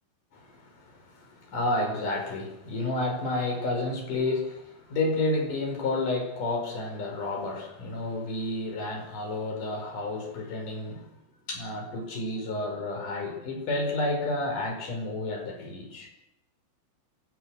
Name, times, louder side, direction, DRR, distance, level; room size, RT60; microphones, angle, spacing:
voice 1, 0.3-11.1 11.5-16.1, left 2 dB, 40° left, 2 dB, 6.4 m, -31 dB
27.0 x 18.5 x 6.5 m, 0.84 s
omnidirectional pair, 5.9 m